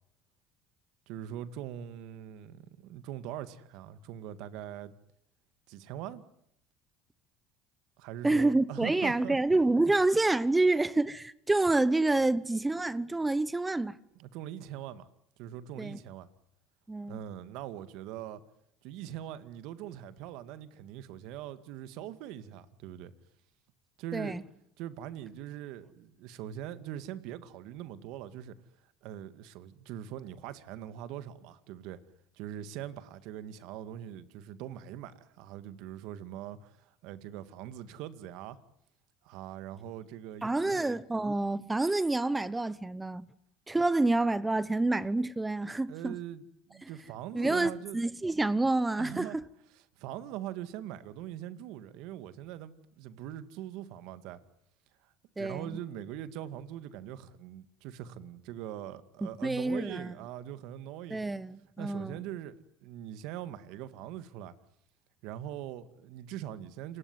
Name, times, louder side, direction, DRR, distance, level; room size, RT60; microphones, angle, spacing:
voice 1, 1.1-4.9 5.7-6.2 8.0-9.4 14.2-15.1 15.4-16.3 17.1-18.4 18.8-23.1 24.0-24.4 24.8-28.6 29.0-32.0 32.3-38.6 39.2-40.8 45.9-48.0 49.0-49.4 49.7-54.4 55.0-55.1 55.4-61.3 61.8-62.6 62.8-64.5 65.2-67.0, right 11 dB, 75° right, 2.1 m, -42 dB
voice 2, 8.2-14.0 15.8-16.0 16.9-17.2 24.1-24.4 40.4-43.3 43.7-46.2 46.8-46.9 47.3-49.4 55.4-55.7 59.4-60.1 61.1-62.2, right 2 dB, 10° right, 1.0 m, -28 dB
28.5 x 20.0 x 9.7 m
supercardioid pair, 110°, 0 cm